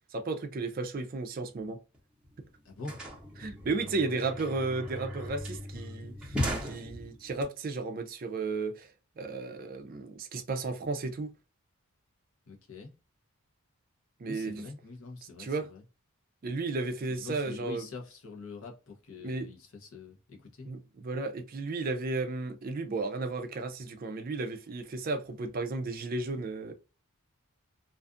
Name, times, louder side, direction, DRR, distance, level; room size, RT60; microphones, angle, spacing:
voice 1, 0.1-1.8 3.4-8.9 9.2-11.3 14.2-14.6 15.4-15.7 16.4-17.9 19.2-19.5 20.7-26.7, right 3 dB, 40° right, 0.4 m, -34 dB
sound 1, 1.9-2.0 2.2-7.4, equal, 5° right, 0.7 m, -37 dB
voice 2, 2.6-3.0 12.5-12.9 14.3-15.8 17.1-20.7, left 4 dB, 65° left, 0.7 m, -44 dB
2.5 x 2.3 x 2.4 m
head